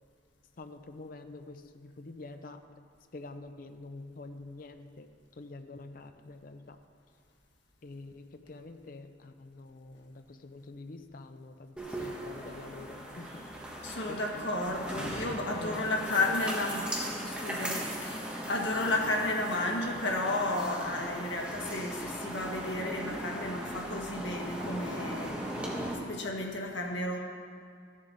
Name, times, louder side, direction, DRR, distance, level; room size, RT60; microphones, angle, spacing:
voice 1, 0.6-2.9 3.1-5.1 5.4-6.8 7.8-13.8 14.1-14.4 15.6-16.7, left 3 dB, 50° left, 8 dB, 0.5 m, -46 dB
sound 1, 11.8-25.9, right 1 dB, 5° right, 1.2 m, -38 dB
voice 2, 13.8-17.0 17.2-27.2, left 2 dB, 80° left, 0 dB, 1.5 m, -33 dB
14.0 x 7.1 x 4.0 m, 2.1 s
head